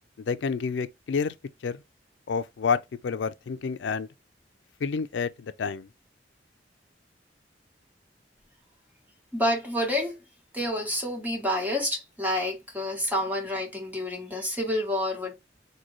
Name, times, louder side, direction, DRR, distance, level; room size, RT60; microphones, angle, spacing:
voice 1, 0.2-1.3 1.6-1.8 2.3-4.1 4.8-5.9, left 5 dB, 85° left, 0.4 m, -29 dB
voice 2, 9.3-10.2 10.5-15.4, left 1 dB, 10° right, 1.2 m, -28 dB
3.8 x 2.2 x 3.0 m
head